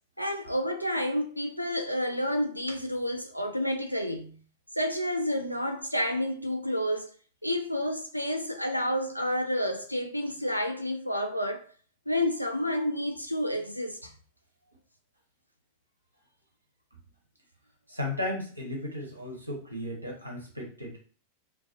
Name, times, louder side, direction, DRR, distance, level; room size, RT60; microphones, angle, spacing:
voice 1, 0.2-4.4 4.8-7.1 7.4-11.7 12.1-14.1, left 1 dB, 90° left, 0.3 m, -30 dB
voice 2, 17.9-21.0, left 1 dB, 85° right, 0.8 m, -35 dB
2.3 x 2.3 x 2.4 m
figure-of-eight pair, 90°, 0 cm